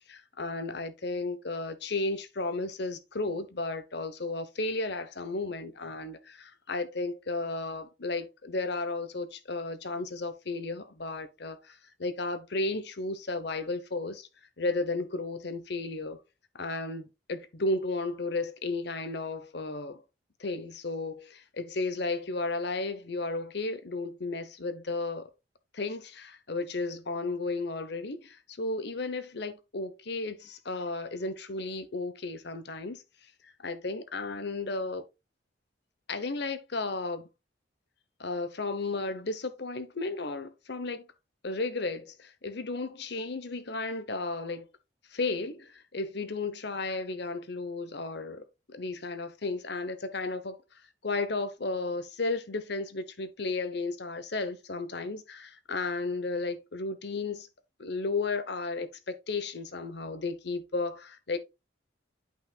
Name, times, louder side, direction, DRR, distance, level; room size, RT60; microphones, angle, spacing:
voice 1, 0.1-14.3 14.6-16.2 16.5-20.0 20.4-25.3 25.7-33.0 33.4-35.0 36.1-37.3 38.2-41.1 41.4-44.7 45.1-50.6 51.0-57.5 57.8-61.4, left 3 dB, 60° left, 1.0 m, -34 dB
8.7 x 5.7 x 2.4 m
head